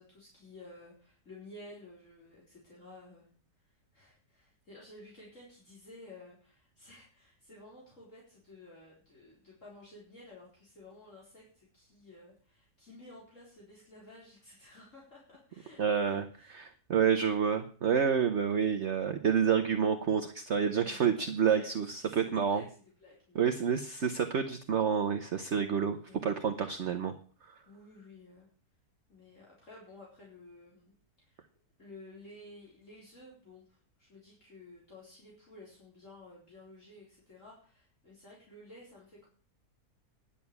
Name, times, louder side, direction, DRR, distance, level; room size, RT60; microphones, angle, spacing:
voice 1, 0.0-3.3 3.6-16.7 20.7-23.7 26.1-26.3 27.6-28.5 29.1-31.4 31.8-39.3, left 2 dB, 50° left, -5 dB, 4.7 m, -54 dB
voice 2, 15.8-16.2 16.5-22.6 23.3-27.1, right 7 dB, 50° right, 7 dB, 1.2 m, -29 dB
11.0 x 7.1 x 9.5 m, 0.43 s
omnidirectional pair, 1.7 m